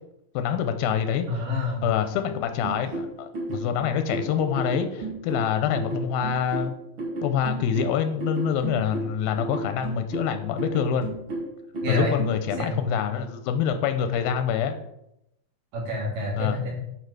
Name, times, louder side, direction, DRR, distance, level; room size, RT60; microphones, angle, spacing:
voice 1, 0.4-1.3 1.8-6.7 7.2-11.1 11.9-14.8 16.4-16.6, left 8 dB, 80° left, 8 dB, 2.4 m, -26 dB
voice 2, 1.3-1.9 11.8-12.2 12.6-12.8 15.7-16.7, left 2 dB, 60° right, -3 dB, 4.2 m, -27 dB
sound 1, 2.6-12.6, right 2 dB, 40° right, 2.0 m, -33 dB
9.1 x 6.3 x 4.8 m, 0.82 s
omnidirectional pair, 4.4 m